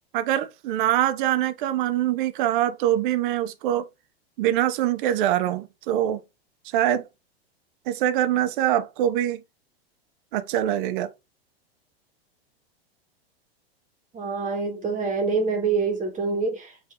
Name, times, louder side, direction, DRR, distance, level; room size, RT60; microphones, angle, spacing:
voice 1, 0.1-3.8 4.4-6.2 6.7-7.0 7.9-9.4 10.3-11.1, right 12 dB, 55° right, 0.7 m, -24 dB
voice 2, 14.1-16.9, right 4 dB, 25° right, 1.1 m, -26 dB
4.6 x 2.6 x 3.4 m
hypercardioid pair, 105°, 31 cm